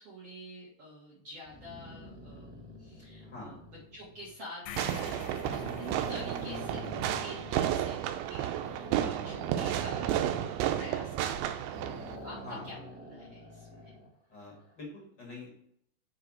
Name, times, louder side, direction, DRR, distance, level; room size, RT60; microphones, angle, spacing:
voice 1, 0.0-3.6 3.9-13.9, equal, 55° right, -5 dB, 1.8 m, -48 dB
sound 1, 1.5-4.3 4.9-5.0 5.4-7.7 8.5-11.4 11.7-14.1, left 1 dB, 5° right, 1.2 m, -45 dB
voice 2, 3.2-3.5 8.9-9.2 12.4-12.7 14.3-15.5, left 2 dB, 50° left, -3 dB, 1.3 m, -45 dB
sound 2, 4.7-8.8, left 10 dB, 90° left, 2.9 m, -49 dB
Fireworks, 4.8-12.2, right 11 dB, 90° right, 2.9 m, -32 dB
6.6 x 4.8 x 6.3 m, 0.71 s
omnidirectional pair, 5.2 m